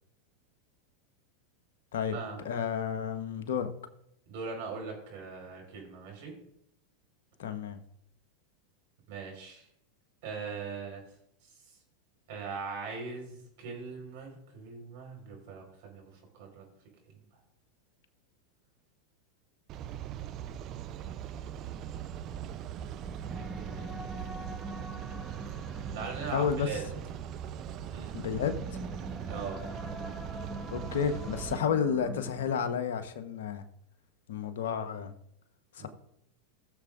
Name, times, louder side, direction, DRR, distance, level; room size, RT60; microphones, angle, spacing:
voice 1, 2.4-3.7 7.4-7.8 26.3-26.7 28.1-28.7 30.7-33.6 34.3-35.1 35.7-35.9, left 7 dB, 70° left, 8 dB, 1.2 m, -31 dB
voice 2, 4.3-6.3 9.1-9.7 10.2-11.0 11.4-11.8 12.3-16.1 16.4-16.7 17.1-17.2 23.2-24.1 25.9-26.8 27.9-28.2 29.3-29.6 35.8-35.9, right 5 dB, 60° right, 1 dB, 4.8 m, -41 dB
sound 1, 19.7-31.6, right 10 dB, 45° right, 0.7 m, -40 dB
sound 2, 23.0-32.8, equal, ahead, 1.6 m, -44 dB
19.5 x 7.0 x 2.6 m, 0.75 s
hypercardioid pair, 90°, 0 cm